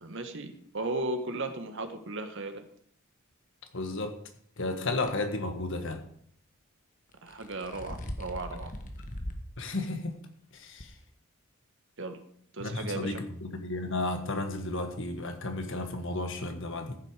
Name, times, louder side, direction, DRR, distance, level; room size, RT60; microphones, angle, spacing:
voice 1, 0.0-2.6 7.2-8.7 12.0-12.2 12.5-13.2, right 2 dB, 60° right, 7 dB, 1.6 m, -36 dB
voice 2, 3.7-4.2 4.6-6.0 9.6-10.1 10.5-10.9 12.6-17.0, left 2 dB, 60° left, 6 dB, 1.7 m, -33 dB
sound 1, 5.1-5.2 7.1-9.5 9.9-10.0 10.8-10.9, equal, 35° left, 1.4 m, -39 dB
14.5 x 7.8 x 5.1 m, 0.64 s
head